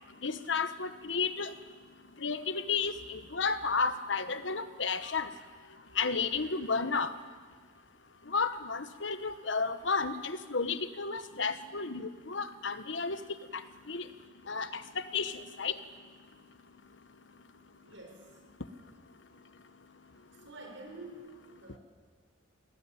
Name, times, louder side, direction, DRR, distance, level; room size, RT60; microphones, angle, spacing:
voice 1, 0.2-1.5 2.2-5.3 5.9-7.1 8.3-13.2 13.5-13.6 13.9-14.0 14.5-15.8, left 5 dB, 70° left, 11 dB, 1.2 m, -32 dB
voice 2, 17.8-18.3 20.1-21.8, right 2 dB, 75° right, 2 dB, 6.6 m, -48 dB
25.5 x 18.5 x 8.7 m, 1.5 s
head